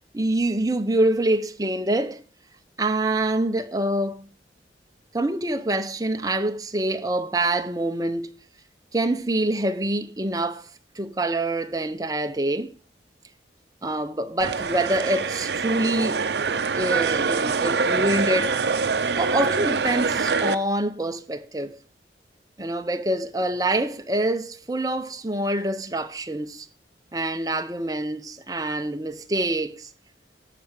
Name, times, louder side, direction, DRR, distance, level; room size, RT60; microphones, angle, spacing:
voice 1, 0.1-2.2 2.8-4.3 5.1-8.4 8.9-10.7 10.9-12.7 13.8-18.6 19.2-21.8 22.6-26.7 27.1-29.9, right 1 dB, 20° right, 0.8 m, -26 dB
sound 1, 14.4-20.6, right 5 dB, 65° right, 0.7 m, -24 dB
13.0 x 5.9 x 6.5 m
head